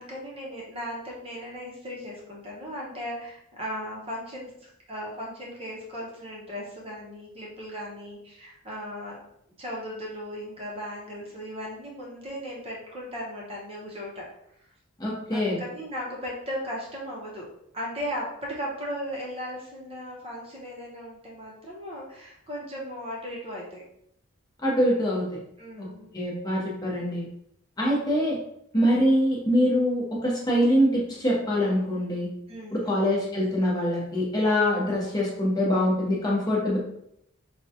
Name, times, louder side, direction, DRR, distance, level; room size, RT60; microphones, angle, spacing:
voice 1, 0.0-9.3 9.6-14.3 14.6-14.7 15.3-17.5 17.7-23.8 25.6-26.1 28.7-29.0 32.5-33.0, equal, 25° right, -3 dB, 0.8 m, -37 dB
voice 2, 15.0-15.6 24.6-25.3 25.8-25.9 26.1-27.3 27.8-28.4 28.7-32.3 32.7-36.8, equal, 20° left, -5 dB, 0.8 m, -24 dB
4.4 x 2.3 x 2.7 m, 0.75 s
head